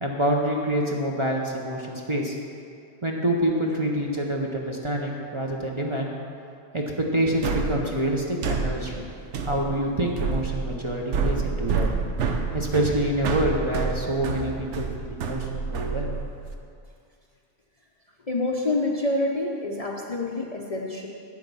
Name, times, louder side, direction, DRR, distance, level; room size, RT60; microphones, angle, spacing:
voice 1, 0.0-2.4 3.0-6.1 6.7-9.1 9.4-11.9 12.5-16.1, right 1 dB, 30° right, -1 dB, 0.8 m, -26 dB
sound 1, 7.4-16.5, right 4 dB, 75° right, 1.0 m, -28 dB
voice 2, 18.3-21.1, left 2 dB, 40° left, -1 dB, 0.6 m, -27 dB
9.1 x 7.7 x 5.4 m, 2.4 s
omnidirectional pair, 1.2 m